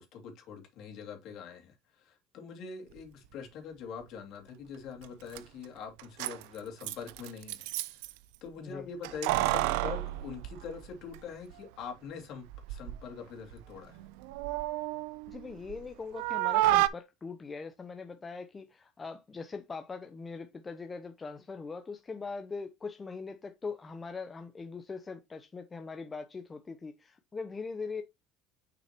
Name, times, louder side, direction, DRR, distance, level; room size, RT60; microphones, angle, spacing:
voice 1, 0.0-8.0 8.4-14.0, left 6 dB, 55° left, 2.3 m, -44 dB
Keys jangling, 5.0-5.1 5.3-5.4 6.0-8.1 9.0-11.2 11.5-11.6 12.5-13.0 13.4-15.9 16.1-16.9, right 16 dB, 80° right, 0.5 m, -31 dB
voice 2, 15.3-28.0, left 4 dB, 20° left, 0.6 m, -41 dB
6.5 x 6.1 x 2.9 m
cardioid pair, 135°, 0 cm